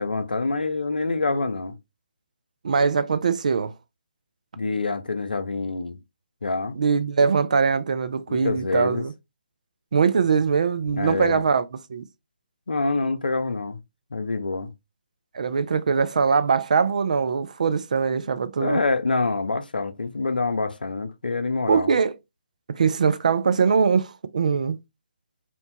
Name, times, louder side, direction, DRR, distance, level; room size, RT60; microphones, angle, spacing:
voice 1, 0.0-1.8 4.6-6.0 6.4-6.8 8.3-9.0 10.9-11.4 12.7-13.8 14.1-14.7 18.2-18.3 18.6-21.9, left 3 dB, 70° left, 0.5 m, -26 dB
voice 2, 2.6-3.7 6.7-9.1 9.9-12.1 15.3-18.8 21.7-22.2 22.7-24.8, right 5 dB, 50° right, 0.3 m, -22 dB
2.9 x 2.1 x 2.7 m
figure-of-eight pair, 140°, 5 cm